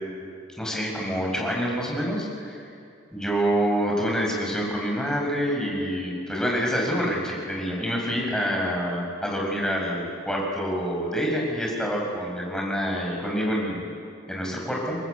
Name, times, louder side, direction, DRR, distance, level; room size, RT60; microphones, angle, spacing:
voice 1, 0.6-2.6 3.1-13.8 14.3-15.0, equal, 5° left, -2 dB, 6.0 m, -27 dB
29.5 x 21.0 x 8.3 m, 2.4 s
head